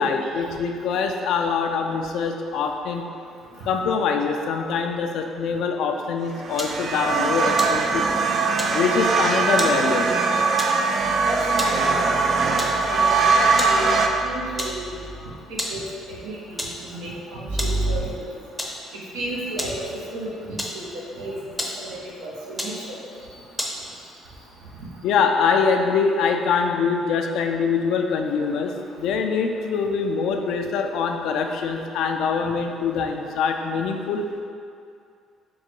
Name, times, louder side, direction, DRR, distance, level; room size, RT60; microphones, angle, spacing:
voice 1, 0.0-3.0 3.6-8.3 8.7-10.1 25.0-28.7 29.0-34.2, left 5 dB, 70° left, 4 dB, 0.3 m, -24 dB
sound 1, 6.4-14.1, right 4 dB, 55° right, 0.3 m, -21 dB
sound 2, 6.6-6.9 7.5-8.2 8.6-8.8 9.6-9.8 10.6-10.9 11.4-11.9 12.6-12.8 13.6-13.9 14.1-14.2 14.6-14.9 15.6-15.9 16.6-16.9 17.6-17.8 18.6-18.8 19.6-19.8 20.6-21.1 21.6-21.9 22.6-22.8 23.6-23.8, equal, ahead, 0.6 m, -31 dB
sound 3, 11.0-15.4 17.5-18.0, right 1 dB, 35° right, 0.8 m, -33 dB
voice 2, 11.3-11.6 11.9-12.1 12.3-12.6 12.9-13.1 13.6-13.9 14.2-14.9 15.5-15.8 16.1-18.1 18.9-20.8 21.1-21.4 21.8-22.9, right 1 dB, 80° right, -5 dB, 0.8 m, -33 dB
3.8 x 2.2 x 4.4 m, 2.4 s
supercardioid pair, 65°, 0 cm